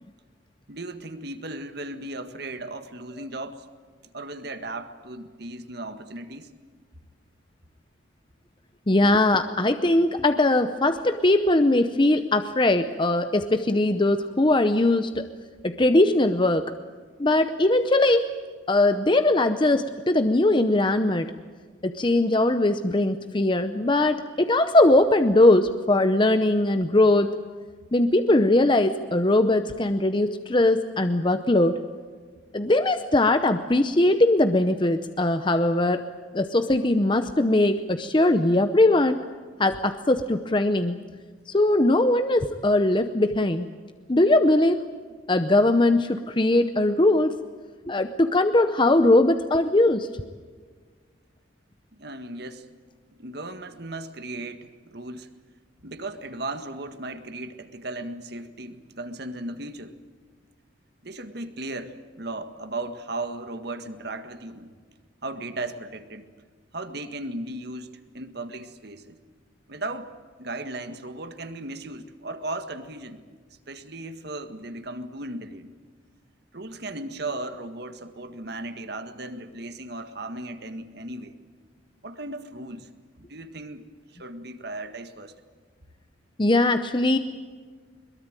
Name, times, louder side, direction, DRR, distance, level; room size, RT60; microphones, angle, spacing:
voice 1, 0.7-3.7 4.1-6.5 52.0-52.7 53.2-55.3 55.8-60.0 61.0-64.7 65.2-66.3 66.7-69.2 69.7-70.1 70.4-73.2 73.7-75.7 76.5-81.4 82.0-82.9 83.2-83.8 84.1-85.4, right 2 dB, 55° right, 9 dB, 1.7 m, -36 dB
voice 2, 8.9-15.3 15.6-16.7 17.2-18.3 18.7-21.3 21.8-27.3 27.9-31.8 32.5-36.0 36.3-39.2 39.6-41.0 41.5-43.7 44.1-44.8 45.3-47.3 47.9-50.1 86.4-87.2, left 2 dB, 25° left, 9 dB, 0.7 m, -20 dB
22.0 x 22.0 x 9.1 m, 1.5 s
head